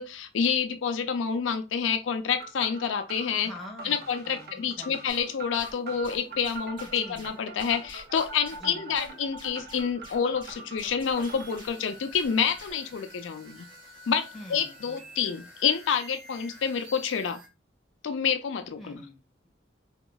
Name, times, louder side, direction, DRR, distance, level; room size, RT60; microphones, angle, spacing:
voice 1, 0.0-3.5 3.8-13.7 14.1-17.4 18.0-19.0, left 7 dB, 80° left, 0.4 m, -28 dB
sound 1, 2.4-11.6, right 3 dB, 55° right, 0.6 m, -43 dB
voice 2, 3.4-5.2 6.9-7.3 8.6-8.9 14.3-15.0 18.8-19.5, left 1 dB, ahead, 1.2 m, -46 dB
sound 2, 5.1-12.9, equal, 25° right, 1.6 m, -50 dB
sound 3, 11.1-17.5, equal, 85° right, 1.7 m, -49 dB
3.6 x 3.0 x 2.3 m
head